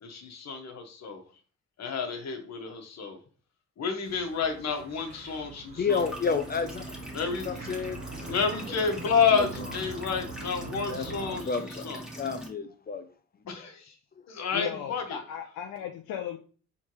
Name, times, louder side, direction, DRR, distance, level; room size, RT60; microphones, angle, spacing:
voice 1, 0.0-1.2 1.8-3.2 3.8-6.0 7.1-7.5 8.3-12.0 13.5-13.9 14.3-15.2, left 5 dB, 60° left, 4 dB, 1.3 m, -30 dB
sound 1, 4.0-11.4, right 2 dB, 35° right, 2.0 m, -43 dB
voice 2, 5.8-7.0 7.3-8.4 8.8-8.9 9.3-9.6 10.9-11.8 12.2-13.1 13.4-13.7 14.1-14.2, left 5 dB, 30° left, 9 dB, 0.5 m, -31 dB
sound 2, 5.9-12.5, right 1 dB, 5° right, 1.4 m, -41 dB
voice 3, 14.5-16.4, left 10 dB, 90° left, 3 dB, 0.6 m, -36 dB
4.4 x 3.6 x 3.1 m, 0.39 s
cardioid pair, 90°, 30 cm